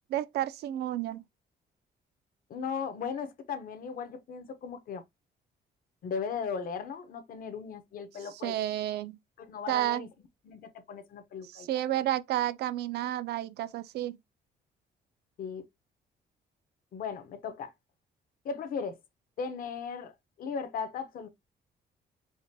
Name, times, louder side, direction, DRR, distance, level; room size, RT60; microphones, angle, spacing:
voice 1, 0.1-1.2 8.4-9.2 9.7-10.1 11.5-14.2, right 13 dB, 80° right, 0.4 m, -31 dB
voice 2, 2.5-5.0 6.0-8.6 9.4-10.1 10.4-11.7 15.4-15.6 16.9-17.7 18.4-19.0 19.4-20.1 20.4-21.3, left 6 dB, 60° left, 0.8 m, -37 dB
4.8 x 2.2 x 2.7 m
cardioid pair, 135°, 16 cm